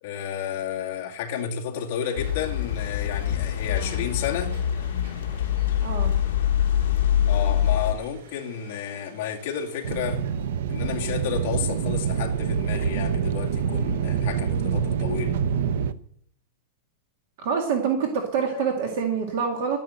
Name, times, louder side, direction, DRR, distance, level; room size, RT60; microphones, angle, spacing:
voice 1, 0.0-4.5 7.3-10.2 10.7-15.4 18.5-18.6, left 8 dB, 40° left, 2.2 m, -31 dB
sound 1, 2.0-10.3, right 3 dB, 80° right, 7.6 m, -50 dB
sound 2, 2.2-7.9, left 10 dB, 65° left, 1.3 m, -24 dB
voice 2, 3.7-4.1 5.8-6.2 17.4-19.8, right 6 dB, 45° right, 2.1 m, -26 dB
sound 3, 9.8-15.9, right 7 dB, 60° right, 0.7 m, -26 dB
12.0 x 10.5 x 7.7 m
supercardioid pair, 180°, 0 cm